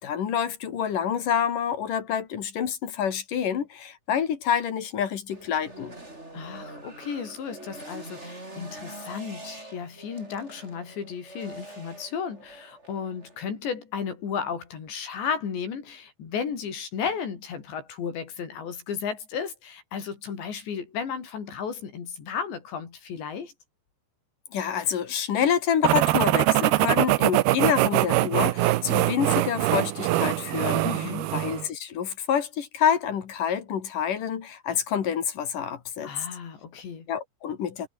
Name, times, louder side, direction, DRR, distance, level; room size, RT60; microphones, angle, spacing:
voice 1, 0.0-5.9 24.5-36.1 37.1-37.9, left 8 dB, 55° left, 3.6 m, -27 dB
sound 1, 5.3-13.4, right 2 dB, 15° right, 5.7 m, -44 dB
voice 2, 6.3-23.5 30.8-31.3 36.0-37.1, left 6 dB, 80° left, 6.7 m, -34 dB
sound 2, 25.8-31.7, right 16 dB, 75° right, 2.7 m, -23 dB
omnidirectional pair, 5.0 m